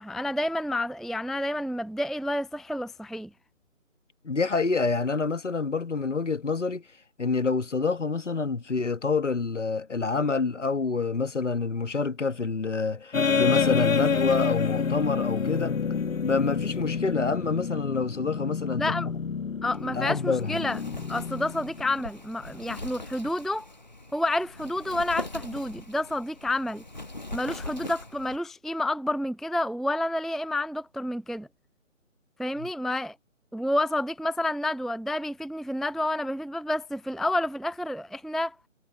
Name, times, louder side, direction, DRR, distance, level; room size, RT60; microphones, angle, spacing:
voice 1, 0.0-3.3 18.8-19.1 19.6-20.8 21.1-23.7 24.1-26.8 27.3-31.5 32.4-33.2 33.5-38.6, left 1 dB, ahead, 0.5 m, -29 dB
voice 2, 4.2-6.8 7.2-15.8 16.2-18.8 19.9-20.6 32.6-32.7, left 4 dB, 65° left, 1.4 m, -27 dB
sound 1, 13.1-22.0, left 6 dB, 85° left, 1.3 m, -28 dB
Wind, 19.7-28.4, left 2 dB, 35° left, 1.1 m, -41 dB
figure-of-eight pair, 175°, 39 cm